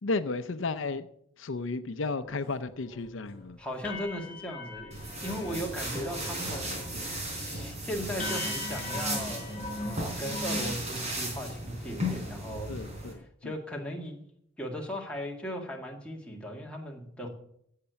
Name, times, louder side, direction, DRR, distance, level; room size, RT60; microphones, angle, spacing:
voice 1, 0.0-1.1 1.4-3.6 5.5-5.6 12.7-13.5, left 3 dB, 75° left, 12 dB, 0.6 m, -33 dB
sound 1, 2.3-2.4 2.8-3.1 3.4-3.5 3.8-5.6 5.9-6.4 6.7-7.1 7.5-7.6 8.2-10.8, left 2 dB, 35° left, 4.4 m, -39 dB
voice 2, 3.6-5.0 5.2-12.8 13.0-14.2 14.6-17.3, equal, 5° left, -1 dB, 2.0 m, -38 dB
sound 2, 4.9-13.1, right 1 dB, 35° right, 4.0 m, -35 dB
16.0 x 6.7 x 6.9 m, 0.71 s
head